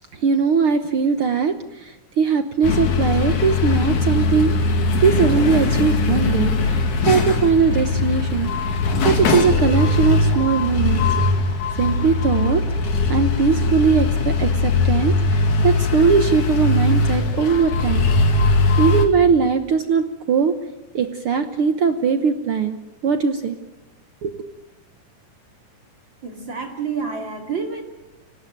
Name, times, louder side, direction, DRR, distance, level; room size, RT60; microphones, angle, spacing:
voice 1, 0.2-1.5 2.2-6.5 7.1-8.5 9.0-11.1 11.8-12.6 13.1-18.1 18.8-20.5 20.9-22.8 23.0-23.6 24.2-24.4, right 6 dB, 65° right, 8 dB, 1.4 m, -20 dB
sound 1, 2.6-19.1, left 3 dB, 60° left, 3.6 m, -20 dB
voice 2, 26.2-27.8, right 5 dB, 35° right, 3 dB, 3.1 m, -28 dB
25.5 x 18.5 x 9.3 m, 0.98 s
omnidirectional pair, 3.9 m